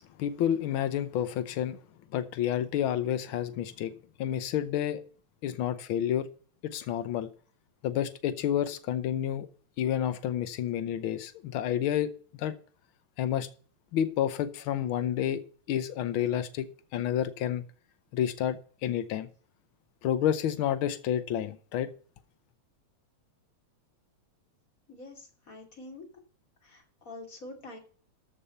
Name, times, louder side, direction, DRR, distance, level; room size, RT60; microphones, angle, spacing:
voice 1, 0.2-1.8 2.1-3.9 4.2-5.0 5.4-6.3 6.6-7.3 7.8-9.5 9.8-12.5 13.2-13.5 13.9-15.4 15.7-17.6 18.1-19.3 20.0-21.9, left 10 dB, 85° left, 1.1 m, -30 dB
voice 2, 24.9-26.0 26.6-27.8, left 2 dB, 30° left, 2.9 m, -46 dB
13.5 x 5.3 x 5.5 m
omnidirectional pair, 3.3 m